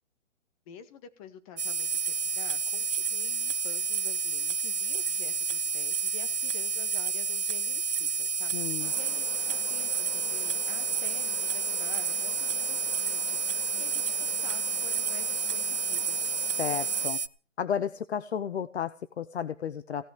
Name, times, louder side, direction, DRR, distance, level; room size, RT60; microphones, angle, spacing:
voice 1, 0.7-16.3, left 8 dB, 30° left, 10 dB, 1.9 m, -49 dB
sound 1, 1.6-17.3, right 5 dB, 70° right, 1.3 m, -30 dB
voice 2, 8.5-8.9 16.4-17.2 17.6-20.1, left 8 dB, 60° left, 14 dB, 1.0 m, -33 dB
sound 2, 8.8-17.1, left 4 dB, 85° left, 3.4 m, -47 dB
17.0 x 8.2 x 7.9 m, 0.39 s
hypercardioid pair, 145°, 36 cm